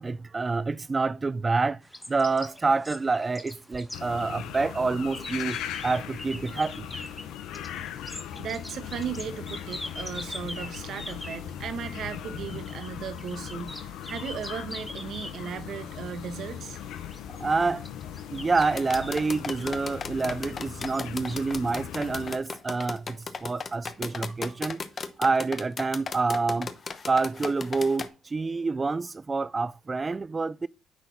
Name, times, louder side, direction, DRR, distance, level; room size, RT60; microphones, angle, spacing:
voice 1, 0.0-1.8 2.1-6.9 17.4-17.9 18.3-24.8 25.2-26.7 27.0-30.7, right 4 dB, 25° right, 0.3 m, -27 dB
sound 1, 1.8-21.4, left 1 dB, 5° left, 1.2 m, -44 dB
sound 2, 3.9-22.4, left 10 dB, 75° left, 0.9 m, -39 dB
voice 2, 8.4-17.1, right 7 dB, 55° right, 1.2 m, -36 dB
sound 3, 18.6-28.1, left 5 dB, 35° left, 0.9 m, -35 dB
9.8 x 4.0 x 4.0 m
cardioid pair, 105°, 0 cm